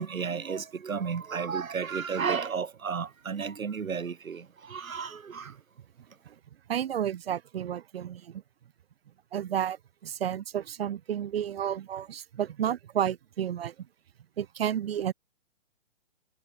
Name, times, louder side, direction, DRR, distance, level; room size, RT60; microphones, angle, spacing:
voice 1, 0.0-4.4 4.7-5.5, right 6 dB, 85° right, 1.3 m, -32 dB
voice 2, 6.7-8.4 9.3-9.8 10.0-13.7 14.4-15.1, right 10 dB, 50° right, 0.6 m, -31 dB
figure-of-eight pair, 140°, 40 cm